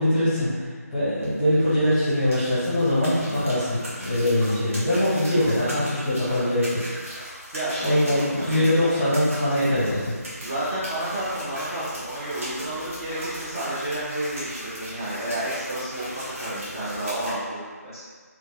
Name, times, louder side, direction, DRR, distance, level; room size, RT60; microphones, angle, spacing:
voice 1, 0.0-6.8 7.8-10.1, left 1 dB, 5° left, -13 dB, 0.9 m, -22 dB
sound 1, 1.1-17.3, equal, 55° right, 1.3 m, -38 dB
voice 2, 7.5-8.7 10.4-18.0, right 1 dB, 20° right, -12 dB, 0.4 m, -31 dB
3.3 x 2.7 x 2.8 m, 1.5 s
figure-of-eight pair, 160°, 9 cm